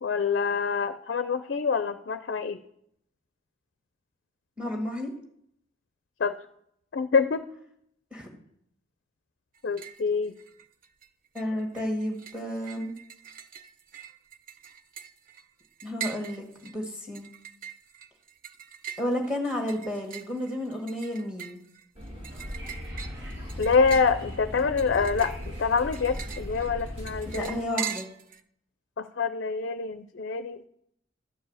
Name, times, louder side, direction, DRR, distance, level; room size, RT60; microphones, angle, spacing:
voice 1, 0.0-2.6 6.2-6.4 6.9-7.4 9.6-10.3 23.6-27.6 29.0-30.7, left 5 dB, 55° left, 11 dB, 0.4 m, -26 dB
voice 2, 4.6-5.1 8.1-8.3 11.3-12.9 15.8-17.3 19.0-21.6 27.2-28.1, left 1 dB, 5° right, 2 dB, 1.6 m, -32 dB
sound 1, 9.5-10.1 10.4-11.1 11.4-28.4, right 9 dB, 45° right, 0.5 m, -42 dB
sound 2, 22.0-27.6, equal, 25° right, 1.8 m, -42 dB
Wind / Subway metro underground, 22.3-27.3, left 1 dB, 60° right, 2.8 m, -39 dB
12.0 x 4.7 x 7.9 m, 0.75 s
head